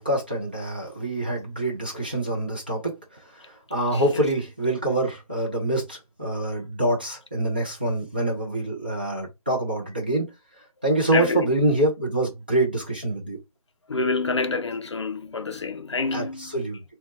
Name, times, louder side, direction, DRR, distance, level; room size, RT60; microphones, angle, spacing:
voice 1, 0.0-2.9 3.3-10.3 10.8-13.4 16.1-16.8, right 1 dB, 15° right, 0.4 m, -25 dB
voice 2, 3.9-4.2 11.1-11.5 13.9-16.5, left 4 dB, 50° left, 0.4 m, -27 dB
2.7 x 2.2 x 4.1 m
figure-of-eight pair, 160°, 19 cm